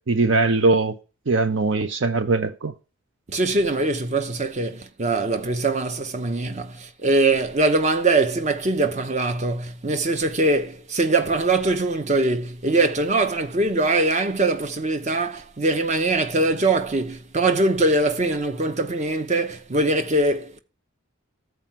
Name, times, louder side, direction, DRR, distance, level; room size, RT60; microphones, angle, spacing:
voice 1, 0.1-0.9 1.3-2.7, right 3 dB, 60° right, 0.6 m, -20 dB
voice 2, 3.3-20.6, right 2 dB, 35° right, 0.8 m, -22 dB
13.5 x 4.7 x 7.4 m
head